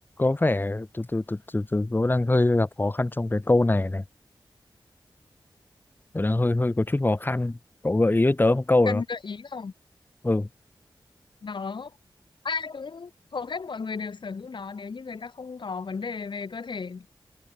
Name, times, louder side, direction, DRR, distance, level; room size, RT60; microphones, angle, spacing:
voice 1, 0.2-4.0 6.1-7.6 7.8-9.0 10.2-10.5, left 2 dB, 25° left, 1.9 m, -23 dB
voice 2, 8.9-9.7 11.4-11.9 12.4-17.1, left 5 dB, 70° left, 4.6 m, -34 dB
wide cardioid pair, 95°, 8 cm